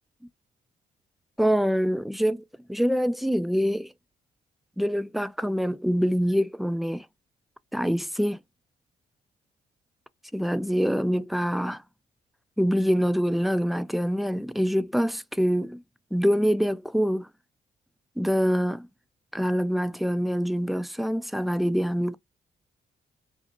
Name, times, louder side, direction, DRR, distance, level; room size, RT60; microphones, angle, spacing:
voice 1, 1.4-2.4 2.7-3.9 4.8-7.1 7.7-8.4 10.3-11.8 12.6-15.8 16.1-17.3 18.2-18.9 19.3-22.2, equal, ahead, 0.4 m, -25 dB
2.6 x 2.4 x 2.6 m
supercardioid pair, 50°, 19 cm